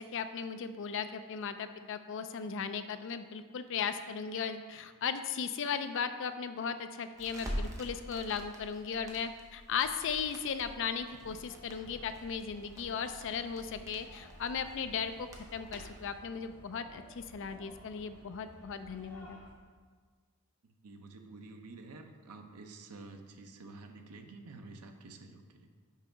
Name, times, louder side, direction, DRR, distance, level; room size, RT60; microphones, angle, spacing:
voice 1, 0.0-19.4, left 6 dB, 55° left, 9 dB, 0.4 m, -37 dB
Crackle, 7.2-16.1, equal, 15° right, 0.8 m, -46 dB
sound 1, 11.1-19.5, equal, 10° left, 1.5 m, -56 dB
voice 2, 20.6-25.7, right 3 dB, 85° right, 5 dB, 0.7 m, -50 dB
5.6 x 4.6 x 5.0 m, 1.5 s
head